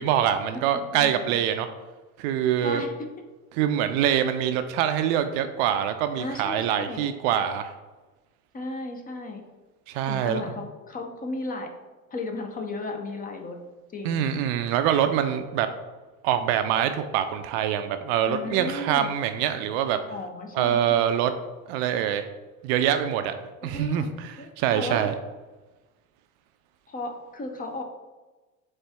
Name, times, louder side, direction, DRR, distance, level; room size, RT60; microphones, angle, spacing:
voice 1, 0.0-1.7 2.2-2.8 3.6-7.7 9.9-10.5 14.0-15.7 16.2-20.0 20.6-21.3 21.7-22.3 22.6-23.3 23.6-25.1, right 10 dB, 50° right, 9 dB, 0.4 m, -24 dB
voice 2, 0.5-1.4 2.6-2.9 6.2-7.0 8.5-9.4 10.1-11.7 12.1-13.6 13.9-14.3 18.3-19.1 20.1-20.8 23.6-24.1 24.4-25.1 26.9-27.8, left 2 dB, 20° left, 4 dB, 0.5 m, -35 dB
4.2 x 3.4 x 3.4 m, 1.2 s
hypercardioid pair, 85°, 42 cm